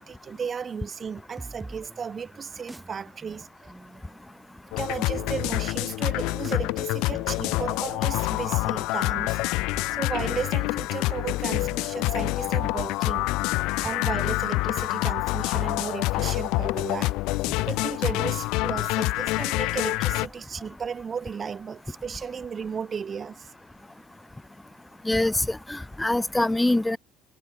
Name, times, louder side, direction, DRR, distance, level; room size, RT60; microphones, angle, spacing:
voice 1, 0.0-3.7 4.8-9.4 9.9-13.3 13.8-17.1 17.7-23.5, right 6 dB, 30° right, 1.4 m, -34 dB
sound 1, 1.4-8.7, right 2 dB, 10° right, 7.3 m, -46 dB
sound 2, 4.7-20.3, left 22 dB, 75° left, 0.9 m, -27 dB
voice 2, 25.0-27.0, left 1 dB, 5° left, 1.2 m, -24 dB
cardioid pair, 145°, 0 cm